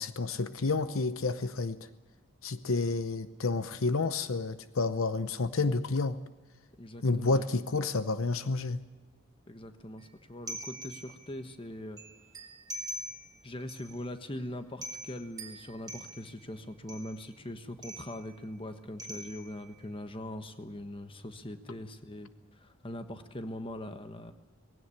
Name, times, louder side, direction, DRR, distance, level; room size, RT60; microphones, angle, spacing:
voice 1, 0.0-1.8 2.4-6.2 7.0-8.8, left 3 dB, 75° left, 12 dB, 0.8 m, -30 dB
voice 2, 6.8-7.4 9.5-12.0 13.4-24.3, left 1 dB, 25° left, 8 dB, 1.2 m, -41 dB
sound 1, 10.5-11.4 12.0-13.4 13.7-14.0 14.4-14.5 14.8-16.4 16.9-17.3 17.8-18.4 19.0-19.8, right 1 dB, 20° right, 3.3 m, -43 dB
19.0 x 17.0 x 9.8 m, 1.2 s
head